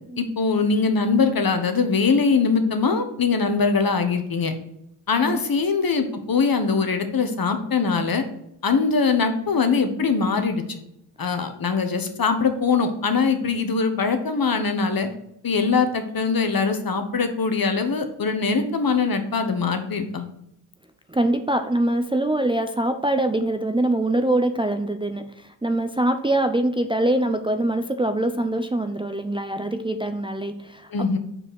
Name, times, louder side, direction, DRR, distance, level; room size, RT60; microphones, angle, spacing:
voice 1, 0.2-4.5 5.1-8.2 8.6-10.8 11.2-15.1 15.4-20.2 30.9-31.2, left 4 dB, 50° left, 7 dB, 1.4 m, -22 dB
voice 2, 21.1-31.2, right 1 dB, 10° right, 6 dB, 0.6 m, -24 dB
5.4 x 4.6 x 6.3 m, 0.77 s
supercardioid pair, 45°, 46 cm